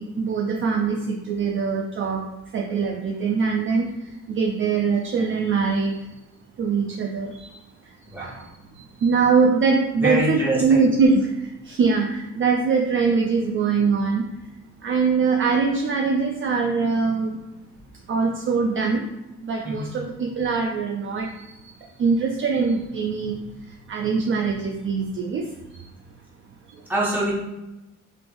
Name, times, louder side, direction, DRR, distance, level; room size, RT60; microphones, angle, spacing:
voice 1, 0.0-2.2 2.5-3.9 4.3-6.0 6.6-7.5 8.2-8.3 9.0-14.2 14.8-17.4 18.1-19.1 19.4-21.3 22.0-23.4 23.9-25.5, right 5 dB, 45° right, 2 dB, 0.4 m, -22 dB
voice 2, 10.0-10.8 19.6-19.9 26.9-27.3, right 1 dB, 5° right, -7 dB, 1.3 m, -25 dB
3.2 x 3.0 x 2.6 m, 0.98 s
cardioid pair, 90°, 30 cm